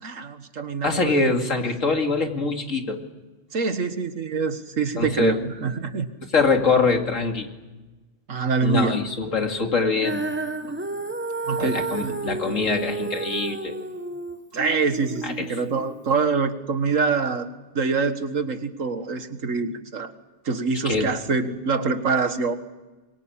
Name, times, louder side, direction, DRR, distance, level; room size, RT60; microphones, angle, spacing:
voice 1, 0.0-1.4 3.5-6.1 8.3-9.0 11.5-12.4 14.5-20.1 20.5-22.6, right 4 dB, 90° right, 9 dB, 2.0 m, -25 dB
voice 2, 0.8-3.0 5.0-5.4 6.3-7.5 8.6-10.2 10.6-10.8 11.6-13.8 15.2-15.4 20.8-21.1, left 4 dB, 85° left, 3 dB, 2.9 m, -23 dB
Female singing, 10.0-16.2, right 3 dB, 10° right, 0.8 m, -31 dB
24.5 x 23.5 x 8.7 m, 1.2 s
omnidirectional pair, 1.3 m